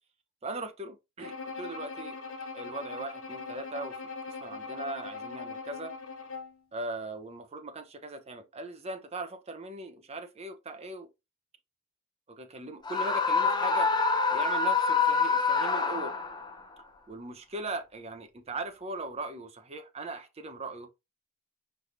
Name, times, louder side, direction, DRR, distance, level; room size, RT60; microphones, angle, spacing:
voice 1, 0.4-2.2 2.5-3.9 4.3-5.9 6.7-11.1 12.4-13.9 14.3-16.2 17.1-20.9, right 2 dB, 30° right, 0.7 m, -39 dB
Bowed string instrument, 1.2-6.6, left 4 dB, 80° left, 1.2 m, -41 dB
Screaming, 12.9-16.5, left 4 dB, 20° left, 0.5 m, -26 dB
4.6 x 3.4 x 2.7 m
head